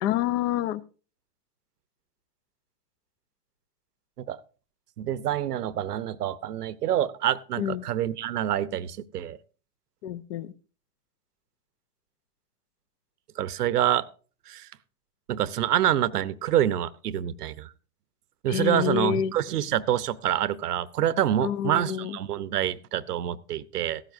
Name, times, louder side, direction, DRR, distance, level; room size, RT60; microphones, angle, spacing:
voice 1, 0.0-0.8 7.6-7.8 10.0-10.5 18.5-19.3 21.4-22.2, left 10 dB, 50° left, 17 dB, 0.8 m, -27 dB
voice 2, 5.0-9.4 13.4-14.1 14.5-14.7 15.3-17.7 18.4-24.0, right 11 dB, 80° right, 18 dB, 0.9 m, -27 dB
15.5 x 13.0 x 2.7 m, 0.38 s
hypercardioid pair, 110°, 46 cm